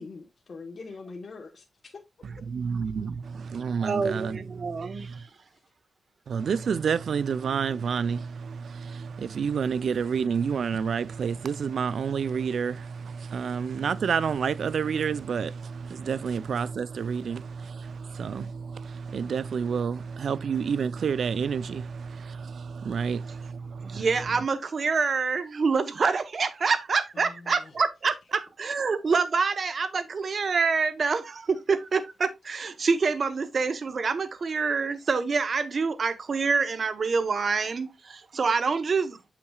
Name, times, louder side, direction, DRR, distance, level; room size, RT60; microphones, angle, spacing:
voice 1, 0.0-2.0 5.5-5.6 27.1-27.8, left 4 dB, 50° left, 1.2 m, -43 dB
voice 2, 2.5-5.2 6.3-24.1, right 6 dB, 65° right, 0.5 m, -29 dB
voice 3, 3.8-5.2 23.8-39.3, right 5 dB, 50° right, 1.0 m, -26 dB
7.8 x 5.8 x 2.4 m
cardioid pair, 95°, 0 cm